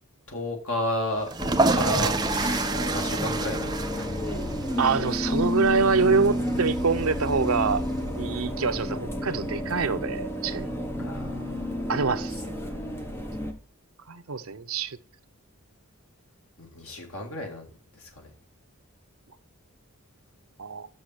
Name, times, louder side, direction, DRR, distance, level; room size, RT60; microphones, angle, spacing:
voice 1, 0.3-1.3 1.7-4.1 10.9-11.9 16.6-17.7 17.9-18.3, left 1 dB, 65° left, 2.3 m, -33 dB
sound 1, 1.2-8.0, right 3 dB, 20° right, 0.5 m, -29 dB
sound 2, 1.4-13.5, left 1 dB, 10° left, 1.0 m, -30 dB
voice 2, 4.8-7.8 8.2-10.7 11.9-12.4 14.1-15.0 20.6-20.9, right 5 dB, 65° right, 0.7 m, -25 dB
6.6 x 6.3 x 6.0 m
head